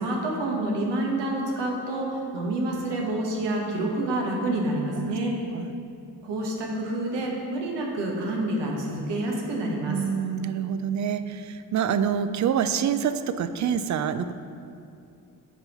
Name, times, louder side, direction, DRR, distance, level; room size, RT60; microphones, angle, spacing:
voice 1, 0.0-5.3 6.2-10.0, right 1 dB, 80° right, -1 dB, 1.3 m, -28 dB
voice 2, 9.9-14.3, right 8 dB, 45° right, 12 dB, 0.4 m, -26 dB
9.2 x 5.4 x 3.0 m, 2.5 s
cardioid pair, 65°, 41 cm